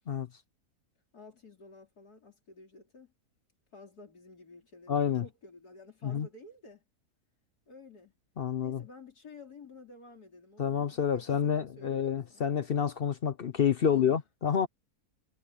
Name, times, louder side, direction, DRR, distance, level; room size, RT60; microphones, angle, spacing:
voice 1, 1.1-3.1 3.7-6.8 7.7-8.1 8.6-12.5 13.8-14.1, left 3 dB, 80° left, 4.4 m, -52 dB
voice 2, 4.9-5.2 6.0-6.3 8.4-8.8 10.6-14.7, left 8 dB, 55° left, 0.7 m, -28 dB
omnidirectional pair, 1.6 m